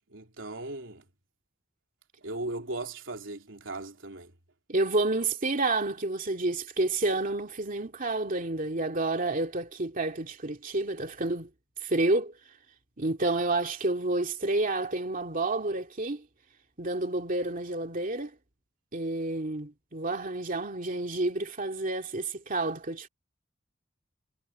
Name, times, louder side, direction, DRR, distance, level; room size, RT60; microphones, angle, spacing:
voice 1, 0.1-1.0 2.2-4.3, right 2 dB, 85° right, 3.4 m, -38 dB
voice 2, 4.7-11.5 11.8-12.3 13.0-16.2 16.8-18.3 18.9-23.1, right 2 dB, 45° right, 2.5 m, -29 dB
head